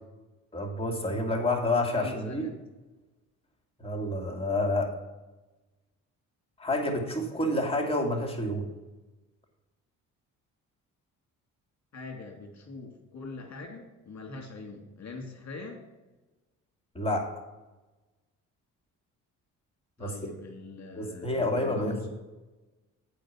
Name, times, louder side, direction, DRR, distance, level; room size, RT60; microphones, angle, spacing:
voice 1, 0.5-2.4 3.8-4.9 6.6-8.6 16.9-17.3 20.0-20.3 20.9-22.1, left 1 dB, 15° left, 1 dB, 2.6 m, -29 dB
voice 2, 2.0-2.6 11.9-15.9 20.0-22.1, left 3 dB, 45° left, 3 dB, 2.4 m, -42 dB
8.5 x 4.9 x 7.2 m, 1.1 s
hypercardioid pair, 50°, 39 cm